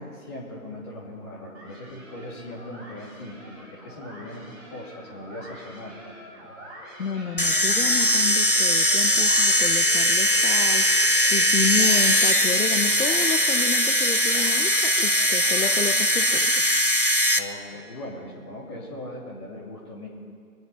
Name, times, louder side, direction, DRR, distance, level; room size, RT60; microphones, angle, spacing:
voice 1, 0.2-6.1 17.3-20.1, left 1 dB, 15° left, -5 dB, 2.7 m, -39 dB
sound 1, 1.5-16.7, right 1 dB, 40° right, 5.1 m, -44 dB
voice 2, 7.0-10.8 11.3-16.7, left 5 dB, 65° left, 7 dB, 0.8 m, -30 dB
sound 2, 7.4-17.4, equal, 35° left, 0.5 m, -20 dB
24.0 x 9.0 x 5.6 m, 2.2 s
figure-of-eight pair, 155°, 48 cm